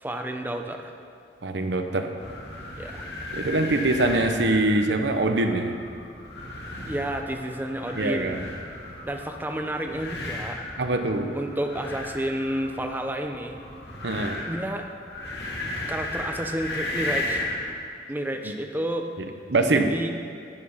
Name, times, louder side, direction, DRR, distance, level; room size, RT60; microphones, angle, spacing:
voice 1, 0.0-0.9 2.8-3.0 6.9-8.5 9.0-10.6 11.3-13.6 14.4-14.9 15.9-17.4 18.1-19.1 19.7-20.2, right 1 dB, 10° right, 4 dB, 0.7 m, -30 dB
voice 2, 1.4-2.1 3.3-5.8 7.9-8.4 10.8-11.3 14.0-14.4 18.4-18.5 19.2-19.9, right 2 dB, 80° right, 6 dB, 0.9 m, -24 dB
sound 1, 2.2-17.7, left 2 dB, 70° left, 2.2 m, -35 dB
11.0 x 8.9 x 5.6 m, 2.4 s
head